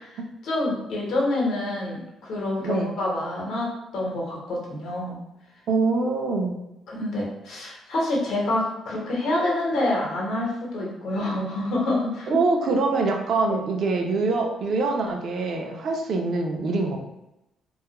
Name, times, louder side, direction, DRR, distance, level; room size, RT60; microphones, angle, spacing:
voice 1, 0.4-5.2 6.9-12.4 13.5-13.6, left 1 dB, 70° left, -3 dB, 0.8 m, -27 dB
voice 2, 5.7-6.6 12.3-17.0, right 3 dB, 50° right, 2 dB, 0.4 m, -24 dB
2.3 x 2.1 x 2.8 m, 0.91 s
cardioid pair, 140°, 0 cm